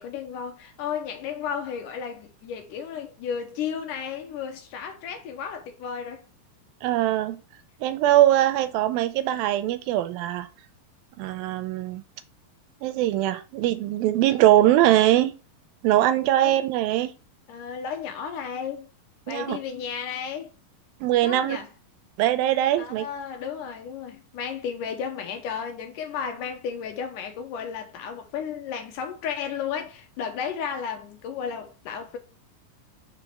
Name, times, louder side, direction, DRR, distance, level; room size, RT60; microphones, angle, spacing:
voice 1, 0.0-6.3 16.4-16.6 17.5-18.9 19.3-20.5 21.2-21.7 22.8-32.2, left 7 dB, 75° left, 2.1 m, -33 dB
voice 2, 6.8-7.4 7.8-10.5 11.2-12.0 12.8-15.3 15.8-17.1 19.3-19.6 21.0-21.6 22.2-23.1, right 13 dB, 85° right, 2.4 m, -21 dB
5.2 x 4.5 x 4.2 m
omnidirectional pair, 4.2 m